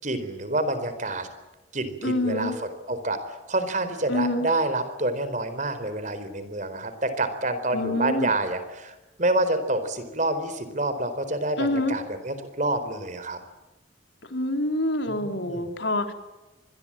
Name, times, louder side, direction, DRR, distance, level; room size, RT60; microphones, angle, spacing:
voice 1, 0.0-1.3 1.7-3.2 3.5-13.4 15.1-15.6, right 2 dB, 40° right, 11 dB, 4.2 m, -28 dB
voice 2, 2.0-2.6 4.1-4.5 7.7-8.3 11.6-12.0 14.3-16.1, left 1 dB, 75° left, 6 dB, 3.8 m, -26 dB
26.5 x 21.0 x 8.9 m, 1.1 s
head